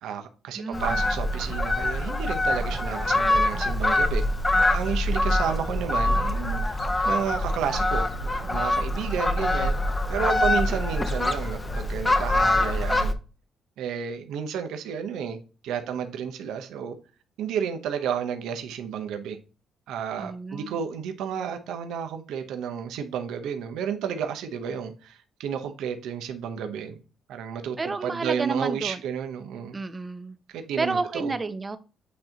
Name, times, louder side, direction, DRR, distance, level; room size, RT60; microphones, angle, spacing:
voice 1, 0.0-4.2 4.7-9.8 10.1-13.1 13.8-15.4 15.6-17.0 17.4-19.4 19.9-27.0 27.3-29.8 30.5-31.3, right 7 dB, 85° right, 0.9 m, -31 dB
voice 2, 0.6-1.0 10.5-10.6 20.1-20.8 27.8-29.0 29.7-30.4 30.8-31.8, right 3 dB, 25° right, 0.7 m, -31 dB
Fowl, 0.7-13.1, left 1 dB, 20° left, 0.8 m, -24 dB
8.5 x 2.9 x 3.9 m
cardioid pair, 90°, 0 cm